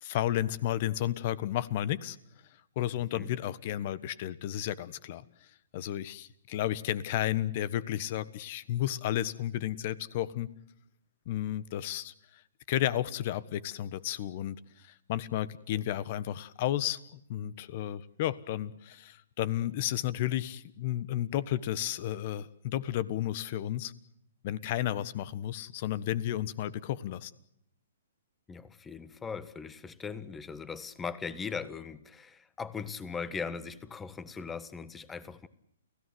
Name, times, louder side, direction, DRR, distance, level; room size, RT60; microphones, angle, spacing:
voice 1, 0.0-2.2 2.7-5.2 5.7-10.5 11.2-12.4 12.7-23.9 24.4-27.3, left 12 dB, 45° left, 19 dB, 1.3 m, -32 dB
voice 2, 28.5-35.5, left 5 dB, 10° left, 16 dB, 1.4 m, -39 dB
30.0 x 17.0 x 7.9 m, 0.78 s
figure-of-eight pair, 125°, 0 cm